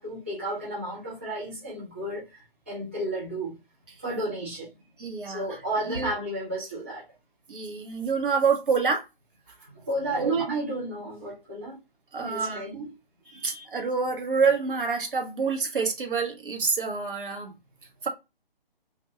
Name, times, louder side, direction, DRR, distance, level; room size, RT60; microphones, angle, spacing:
voice 1, 0.0-3.6 4.0-4.7 5.2-7.0 9.5-11.8 12.2-12.9 13.2-13.7, right 2 dB, 15° right, 0.4 m, -32 dB
voice 2, 5.0-5.6 5.9-6.1 7.5-9.0 10.2-10.4 12.1-12.8 13.4-17.5 18.0-18.1, right 5 dB, 60° right, 0.8 m, -27 dB
2.4 x 2.2 x 2.8 m
figure-of-eight pair, 140°, 30 cm